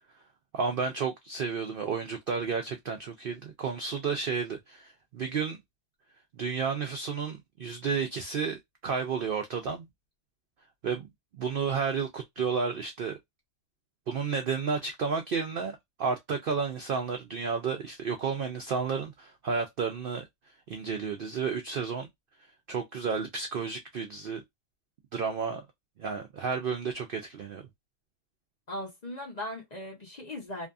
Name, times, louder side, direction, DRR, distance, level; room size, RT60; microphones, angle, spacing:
voice 1, 0.5-5.6 6.3-9.9 10.8-11.1 11.3-13.2 14.1-20.2 20.7-22.1 22.7-24.4 25.1-25.7 26.0-27.6, right 5 dB, 85° right, 0.4 m, -32 dB
voice 2, 28.7-30.7, left 1 dB, 40° left, 0.6 m, -38 dB
2.6 x 2.6 x 2.2 m
omnidirectional pair, 1.5 m